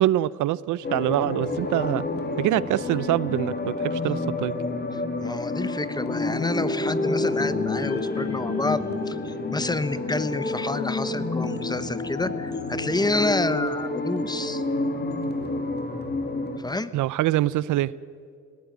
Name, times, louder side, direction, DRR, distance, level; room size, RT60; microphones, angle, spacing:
voice 1, 0.0-2.0 2.4-4.5 16.9-17.9, right 14 dB, 80° right, 20 dB, 0.6 m, -24 dB
sound 1, 0.8-16.6, left 2 dB, 35° left, 2.7 m, -29 dB
voice 2, 4.9-14.6 16.6-16.9, left 2 dB, 15° left, 14 dB, 1.0 m, -29 dB
19.0 x 17.0 x 9.2 m, 2.2 s
cardioid pair, 90°, 30 cm